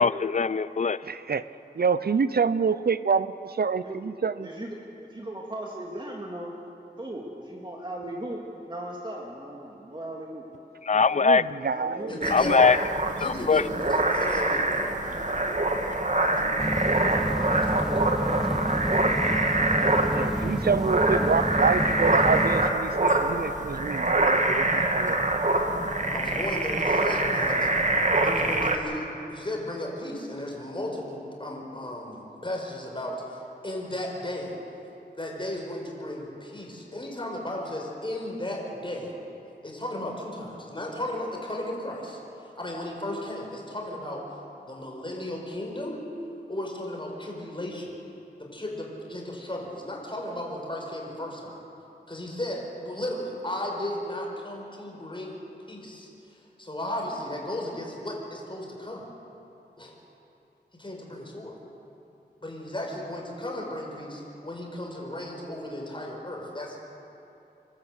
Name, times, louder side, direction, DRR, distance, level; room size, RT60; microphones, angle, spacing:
voice 1, 0.0-1.0 10.8-11.4 12.3-12.8 13.2-13.6, left 5 dB, 45° left, 17 dB, 0.5 m, -21 dB
voice 2, 1.1-1.4 1.8-4.5 11.2-12.1 20.1-25.2, right 5 dB, 65° right, 14 dB, 0.6 m, -27 dB
voice 3, 4.4-6.5 7.0-10.4 11.6-12.8, right 1 dB, 25° right, -1 dB, 2.3 m, -38 dB
voice 4, 12.1-12.6 13.2-16.0 16.2-18.1 26.1-27.7 28.2-34.5 35.2-39.1 39.6-42.2 42.6-44.2 44.7-46.0 46.5-48.0 48.4-51.6 52.1-59.0 59.8-59.9 60.7-61.6 62.4-66.8, left 1 dB, 30° left, -1 dB, 5.4 m, -35 dB
sound 1, 12.2-28.8, right 2 dB, 45° right, 1.8 m, -25 dB
sound 2, 16.6-22.7, equal, ahead, 1.1 m, -30 dB
27.0 x 13.0 x 8.3 m, 2.8 s
wide cardioid pair, 55°, 18 cm